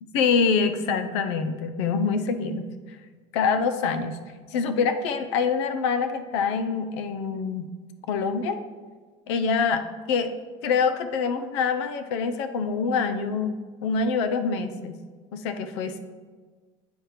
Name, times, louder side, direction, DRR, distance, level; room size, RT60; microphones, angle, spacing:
voice 1, 0.1-2.6 3.3-4.2 4.5-7.7 8.1-8.6 9.3-10.3 10.6-13.5 13.8-15.0 15.3-16.0, left 5 dB, 85° left, 9 dB, 0.6 m, -25 dB
8.3 x 3.1 x 4.9 m, 1.4 s
supercardioid pair, 120°, 14 cm